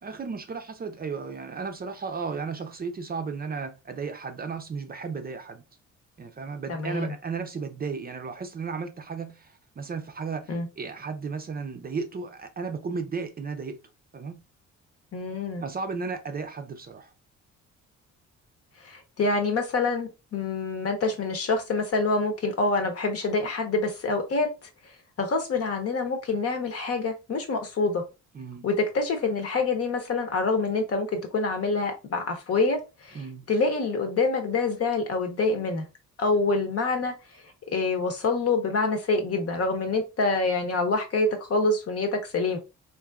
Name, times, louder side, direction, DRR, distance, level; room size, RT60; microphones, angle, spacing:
voice 1, 0.0-5.6 6.2-13.8 14.1-14.4 15.6-17.1 28.3-28.7 33.1-33.5, right 5 dB, 30° right, 0.5 m, -34 dB
voice 2, 6.7-7.1 10.5-10.7 15.1-15.6 18.8-24.7 25.2-28.0 28.6-35.9 36.2-37.2 37.7-42.6, left 3 dB, 50° left, 1.0 m, -26 dB
3.5 x 2.6 x 2.3 m
cardioid pair, 90°, 30 cm